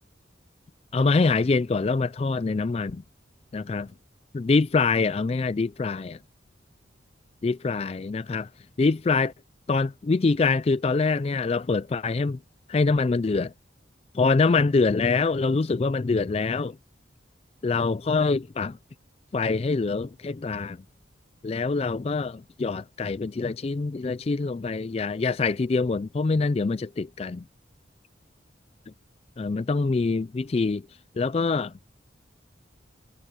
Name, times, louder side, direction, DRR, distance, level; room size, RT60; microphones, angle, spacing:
voice 1, 0.9-3.0 3.5-3.9 4.3-6.1 7.4-8.5 8.8-9.3 9.7-12.4 12.7-13.5 14.1-16.8 17.6-18.8 19.3-20.8 21.4-27.4 29.4-30.8 31.2-31.7, left 4 dB, 30° left, 0.3 m, -24 dB
head